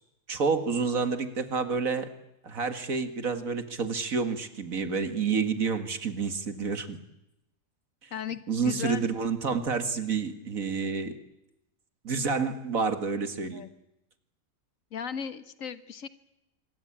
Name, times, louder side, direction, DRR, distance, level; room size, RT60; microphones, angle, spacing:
voice 1, 0.3-2.1 2.4-7.0 8.5-11.2 12.0-13.6, right 5 dB, 70° right, 9 dB, 2.3 m, -29 dB
voice 2, 8.1-9.1 13.5-13.7 14.9-16.1, left 7 dB, 65° left, 12 dB, 1.7 m, -36 dB
25.5 x 22.5 x 8.8 m, 0.87 s
omnidirectional pair, 1.5 m